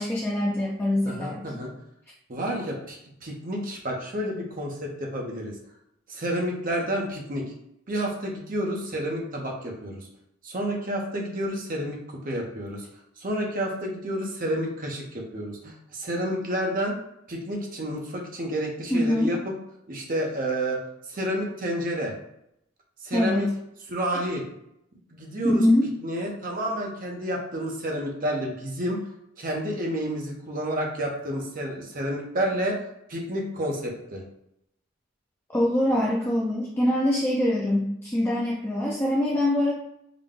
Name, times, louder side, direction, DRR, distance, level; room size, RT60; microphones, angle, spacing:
voice 1, 0.0-1.4 18.9-19.3 23.1-23.5 25.4-25.9 35.5-39.7, left 1 dB, 10° left, -4 dB, 0.4 m, -23 dB
voice 2, 1.1-1.7 2.3-5.5 6.1-7.4 7.9-10.1 10.4-12.8 13.2-16.9 17.3-19.5 19.9-20.8 21.1-22.1 23.0-23.5 23.9-24.4 25.1-25.6 26.0-29.0 29.4-32.8 33.1-34.2, equal, 45° right, 0 dB, 0.8 m, -30 dB
3.9 x 2.2 x 3.6 m, 0.79 s
head